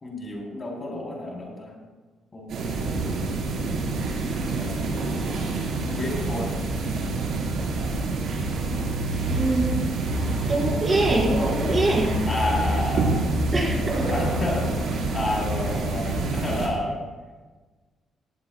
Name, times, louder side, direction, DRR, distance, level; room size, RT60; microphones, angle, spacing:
voice 1, 0.0-1.8 2.3-3.0 3.9-5.0 5.9-6.5 12.3-13.2 14.1-14.8 15.1-17.0, left 1 dB, 35° left, -1 dB, 3.5 m, -31 dB
sound 1, 2.5-16.7, right 2 dB, 75° right, 4.2 m, -27 dB
voice 2, 9.2-9.9 10.5-12.1 13.5-14.0, right 2 dB, 30° right, -3 dB, 4.9 m, -24 dB
18.0 x 16.5 x 2.3 m, 1.3 s
cardioid pair, 90°, 0 cm